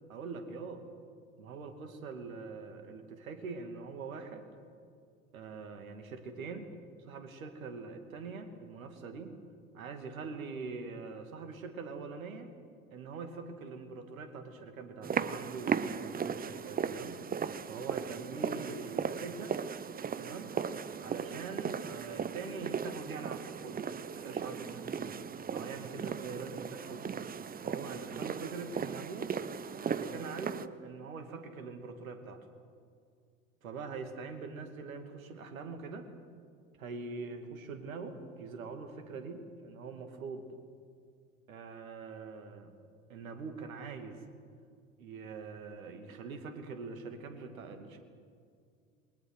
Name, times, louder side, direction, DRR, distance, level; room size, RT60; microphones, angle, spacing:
voice 1, 0.1-0.9 1.4-4.5 5.3-6.7 7.1-9.4 9.7-12.5 12.9-17.2 17.7-19.6 20.2-20.5 21.0-23.9 24.1-25.2 25.5-27.4 27.6-29.3 29.8-32.4 33.6-36.1 36.8-40.5 41.5-42.7 43.1-44.2 45.0-48.0, right 4 dB, 75° right, 7 dB, 2.7 m, -43 dB
sound 1, 15.0-30.7, right 7 dB, 20° right, 0.9 m, -37 dB
28.0 x 22.5 x 6.3 m, 2.3 s
figure-of-eight pair, 70°, 41 cm